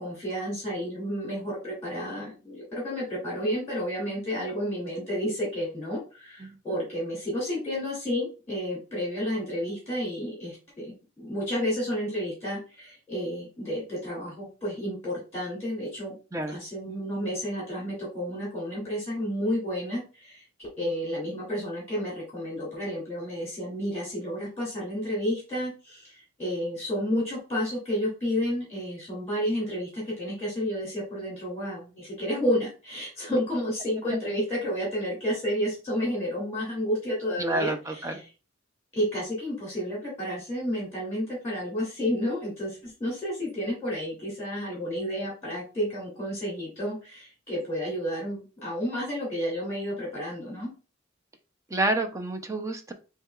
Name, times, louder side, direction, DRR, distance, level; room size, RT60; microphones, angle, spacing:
voice 1, 0.0-16.1 16.5-20.4 20.8-37.7 38.9-50.7, equal, 15° left, -6 dB, 2.6 m, -31 dB
voice 2, 37.4-38.2 51.7-52.9, right 2 dB, 15° right, 5 dB, 0.6 m, -29 dB
7.6 x 2.8 x 2.4 m, 0.33 s
head